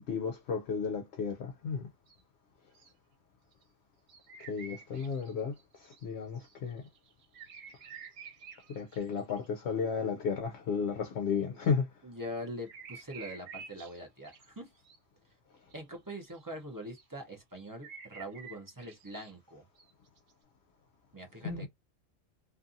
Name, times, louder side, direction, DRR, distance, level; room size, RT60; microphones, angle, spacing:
voice 1, 0.1-1.8 4.5-6.8 8.7-11.9 21.4-21.7, left 6 dB, 65° left, 0.7 m, -33 dB
sound 1, 2.1-2.2 2.7-2.9 3.5-3.6 4.1-6.1 6.4-9.5 11.6-11.7 12.7-14.5 14.8-15.0 15.7-15.8 16.1-16.4 16.8-17.0 17.6-19.3 19.8-19.9 20.2-20.3, right 6 dB, 75° right, 1.1 m, -50 dB
voice 2, 12.0-14.7 15.2-15.3 15.7-19.6 21.1-21.7, equal, 25° right, 0.4 m, -43 dB
2.6 x 2.5 x 2.5 m
omnidirectional pair, 1.4 m